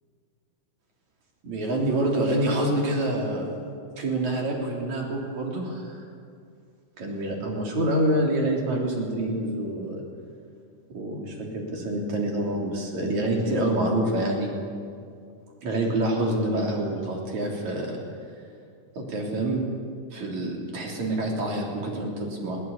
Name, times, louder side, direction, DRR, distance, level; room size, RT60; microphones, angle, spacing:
voice 1, 1.4-3.4 4.0-6.0 7.0-10.0 10.9-14.5 15.6-18.0 19.0-19.7 20.1-22.6, right 1 dB, 65° right, -1 dB, 4.8 m, -27 dB
21.5 x 16.5 x 8.5 m, 2.3 s
omnidirectional pair, 3.6 m